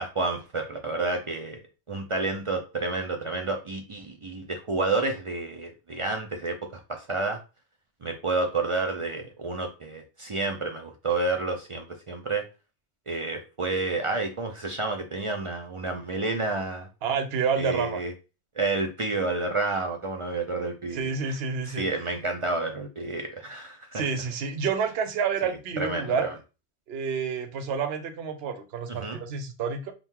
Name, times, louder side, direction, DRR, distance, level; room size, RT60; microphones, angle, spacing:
voice 1, 0.0-1.6 1.9-7.4 8.0-12.4 13.1-16.9 17.6-18.1 18.6-21.0 21.7-24.0 25.8-26.3 28.9-29.2, right 3 dB, 45° right, 3 dB, 0.4 m, -30 dB
voice 2, 17.0-18.0 20.9-21.9 23.9-26.3 26.9-29.9, right 6 dB, 65° right, 7 dB, 0.9 m, -29 dB
4.4 x 2.3 x 3.6 m, 0.30 s
omnidirectional pair, 1.1 m